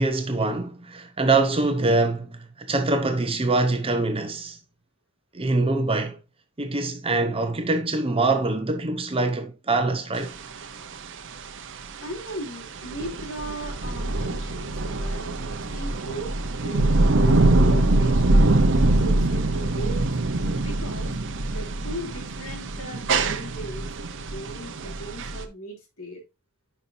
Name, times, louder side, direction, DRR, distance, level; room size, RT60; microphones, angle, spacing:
voice 1, 0.0-4.6 5.3-6.2 6.6-10.4, right 2 dB, 25° right, 0.9 m, -24 dB
sound 1, 10.2-25.4, right 2 dB, 60° right, 0.8 m, -23 dB
voice 2, 12.0-18.5 18.9-20.1 20.4-21.1 21.5-23.9 24.1-26.2, right 1 dB, 70° left, 3.1 m, -38 dB
9.7 x 5.6 x 2.7 m
head